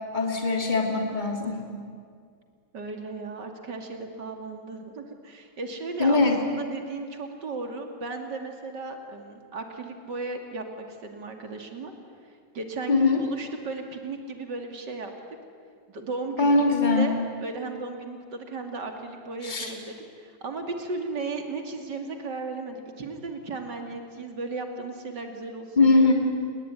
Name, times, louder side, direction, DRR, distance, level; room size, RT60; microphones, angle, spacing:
voice 1, 0.1-1.6 6.0-6.4 12.9-13.2 16.4-17.2 19.4-19.7 25.8-26.1, left 3 dB, 25° left, 2 dB, 3.2 m, -21 dB
voice 2, 2.7-11.9 12.5-15.1 15.9-16.6 17.0-26.1, right 3 dB, 80° right, 4 dB, 3.2 m, -35 dB
29.5 x 20.5 x 9.7 m, 2.1 s
omnidirectional pair, 1.8 m